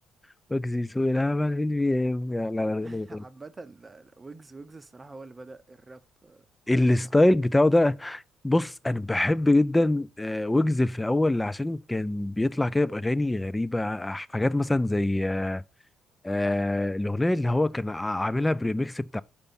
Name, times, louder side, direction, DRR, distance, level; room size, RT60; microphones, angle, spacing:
voice 1, 0.5-3.2 6.7-15.6 16.2-19.2, left 1 dB, 10° left, 0.4 m, -25 dB
voice 2, 2.6-6.9, right 3 dB, 25° right, 0.7 m, -47 dB
5.8 x 5.0 x 5.7 m
figure-of-eight pair, 45°, 0 cm